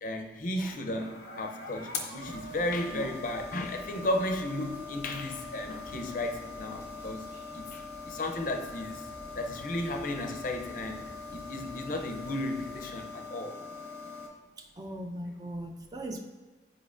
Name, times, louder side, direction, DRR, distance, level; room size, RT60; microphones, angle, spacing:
voice 1, 0.0-7.2 7.5-9.0 9.3-11.0 11.3-13.6, left 1 dB, 50° left, 5 dB, 0.5 m, -34 dB
sound 1, 0.7-14.3, left 4 dB, 85° left, 0.9 m, -43 dB
sound 2, 2.2-13.0, equal, 40° right, 1.5 m, -52 dB
voice 2, 14.6-16.2, right 1 dB, 20° right, 2 dB, 0.4 m, -39 dB
8.3 x 4.9 x 2.4 m, 1.4 s
head